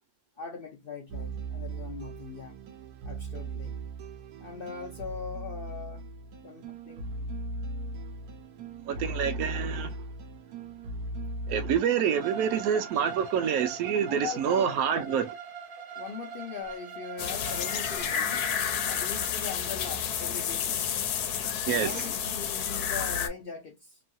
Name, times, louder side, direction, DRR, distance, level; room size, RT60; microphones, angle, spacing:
voice 1, 0.4-2.6 3.1-3.8 4.4-6.0 6.4-7.1 14.1-15.1 16.0-18.5 18.9-20.9 21.7-24.0, left 6 dB, 65° left, 0.5 m, -40 dB
sound 1, 1.1-11.8, right 2 dB, 90° right, 1.2 m, -38 dB
voice 2, 8.9-9.9 11.5-15.3 21.7-22.1, right 8 dB, 75° right, 1.0 m, -27 dB
Bowed string instrument, 12.1-19.3, right 5 dB, 55° right, 0.6 m, -42 dB
sound 2, 17.2-23.3, left 8 dB, 85° left, 1.1 m, -30 dB
3.0 x 2.3 x 2.6 m
omnidirectional pair, 1.6 m